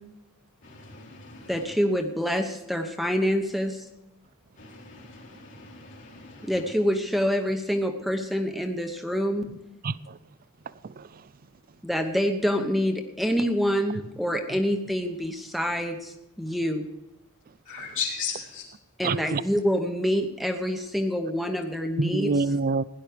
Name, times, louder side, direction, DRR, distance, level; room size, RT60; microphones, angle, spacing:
voice 1, 0.6-1.7 4.6-6.7 17.6-18.7, left 6 dB, 60° left, 3.1 m, -37 dB
voice 2, 1.5-3.8 6.4-9.5 11.8-16.8 19.0-22.4, equal, ahead, 0.9 m, -26 dB
voice 3, 9.8-10.2 10.8-11.2 19.0-19.4 22.0-22.8, right 3 dB, 40° right, 0.4 m, -27 dB
16.5 x 11.0 x 5.0 m
head